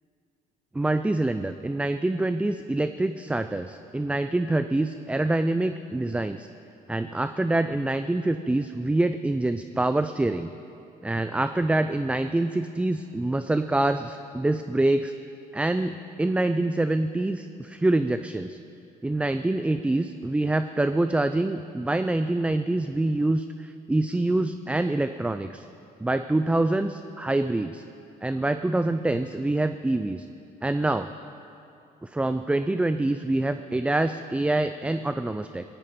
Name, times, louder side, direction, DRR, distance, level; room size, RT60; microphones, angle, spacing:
voice 1, 0.7-6.5 6.9-10.5 11.0-15.1 15.5-18.6 19.0-25.7 26.0-27.8 28.2-30.3 30.6-31.1 32.0-35.6, right 2 dB, 5° right, 10 dB, 0.4 m, -25 dB
18.0 x 17.5 x 4.3 m, 2.7 s
cardioid pair, 110°, 17 cm